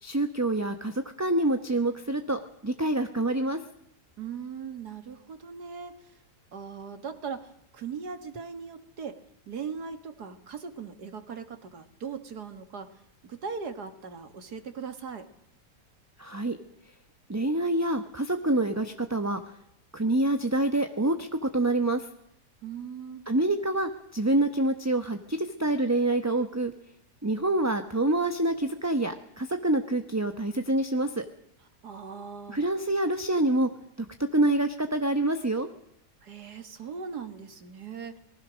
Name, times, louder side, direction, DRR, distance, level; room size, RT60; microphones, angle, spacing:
voice 1, 0.0-3.6 16.2-16.6 17.3-19.4 19.9-22.1 23.3-26.7 27.2-31.3 32.5-33.7 34.0-34.1 34.3-35.7, right 2 dB, 10° right, 7 dB, 0.8 m, -26 dB
voice 2, 4.2-6.2 6.5-9.2 9.5-12.9 13.2-15.3 22.6-23.2 31.8-32.7 36.2-38.2, right 6 dB, 70° right, 8 dB, 2.4 m, -39 dB
26.0 x 20.0 x 6.4 m, 0.78 s
omnidirectional pair, 1.8 m